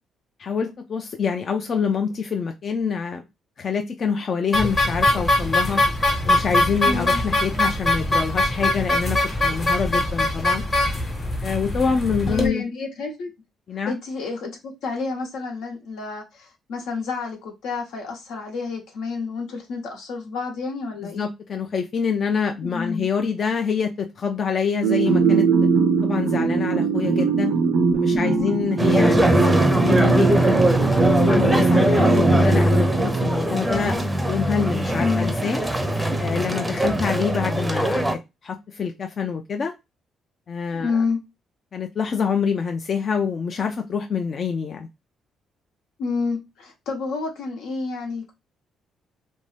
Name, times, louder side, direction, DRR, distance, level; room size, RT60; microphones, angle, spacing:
voice 1, 0.4-3.2 3.6-5.8 6.2-10.6 11.4-12.7 13.7-14.0 21.0-25.5 26.0-27.6 27.9-30.6 31.2-34.0 34.2-35.6 36.2-39.7 40.5-41.0 41.7-44.9, left 6 dB, 50° left, 0.4 m, -26 dB
sound 1, 4.5-12.5, left 1 dB, 35° left, 0.9 m, -22 dB
voice 2, 6.8-7.2 12.3-13.3 13.9-21.3 22.6-23.1 28.1-28.5 31.9-32.3 35.0-35.3 40.7-41.2 46.0-48.3, left 4 dB, 85° left, 1.0 m, -29 dB
sound 2, 24.8-33.6, right 4 dB, 70° right, 0.4 m, -21 dB
sound 3, 28.8-38.1, right 1 dB, 10° right, 0.5 m, -21 dB
2.6 x 2.2 x 3.2 m
cardioid pair, 90°, 0 cm